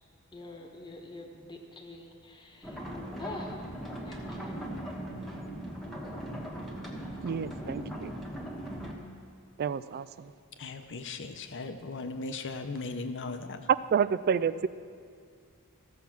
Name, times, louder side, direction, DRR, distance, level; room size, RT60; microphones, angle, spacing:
voice 1, 0.3-2.8 3.2-3.6 4.0-4.6, left 2 dB, 20° left, 2 dB, 1.2 m, -45 dB
sound 1, 2.6-8.9, right 1 dB, ahead, 1.3 m, -39 dB
voice 2, 7.2-8.1 9.6-10.3 13.9-14.7, right 7 dB, 45° right, 17 dB, 0.3 m, -29 dB
voice 3, 10.6-13.7, left 3 dB, 60° left, 8 dB, 0.8 m, -37 dB
15.0 x 7.0 x 5.9 m, 2.2 s
head